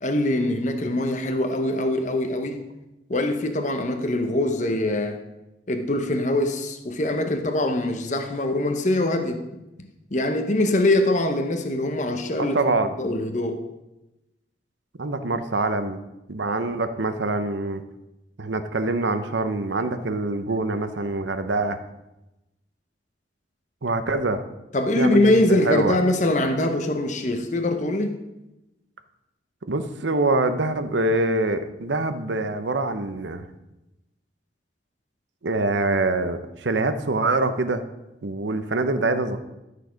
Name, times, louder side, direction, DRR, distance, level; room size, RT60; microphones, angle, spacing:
voice 1, 0.0-2.7 3.1-5.2 5.7-9.4 10.1-12.6 13.0-13.7 24.7-28.2, left 1 dB, 40° left, 5 dB, 0.8 m, -23 dB
voice 2, 12.4-12.9 15.0-16.0 16.3-17.8 18.4-21.8 23.8-24.4 25.0-25.3 25.6-26.0 29.7-33.4 35.4-37.8 38.2-39.4, right 2 dB, 80° right, 9 dB, 0.8 m, -24 dB
12.0 x 6.6 x 5.1 m, 0.96 s
head